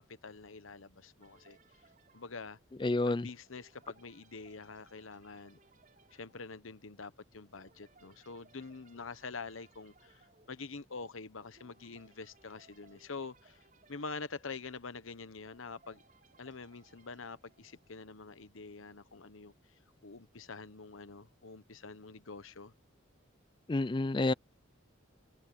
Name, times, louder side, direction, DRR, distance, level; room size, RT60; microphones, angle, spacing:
voice 1, 0.0-1.6 2.1-2.6 3.1-5.6 6.1-10.2 10.5-13.6 13.9-16.0 16.4-19.5 20.0-22.7, left 4 dB, 85° left, 1.1 m, -46 dB
sound 1, 1.2-18.4, right 4 dB, 40° right, 6.9 m, -66 dB
voice 2, 2.8-3.3 23.7-24.3, left 2 dB, 25° left, 0.4 m, -29 dB
head